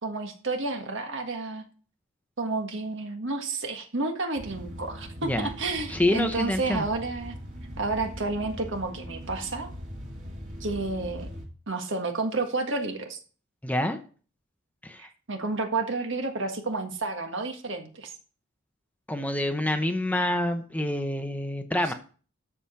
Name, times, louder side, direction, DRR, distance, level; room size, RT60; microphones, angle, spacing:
voice 1, 0.0-1.7 2.4-7.4 7.8-9.7 10.6-11.3 11.7-13.2 15.0-18.1, right 3 dB, 60° right, 5 dB, 1.6 m, -31 dB
sound 1, 4.4-11.5, equal, 40° right, 2.6 m, -40 dB
voice 2, 5.9-6.9 13.6-14.0 14.8-15.1 19.1-21.9, left 1 dB, 5° left, 6 dB, 0.8 m, -27 dB
13.0 x 5.0 x 5.7 m, 0.40 s
head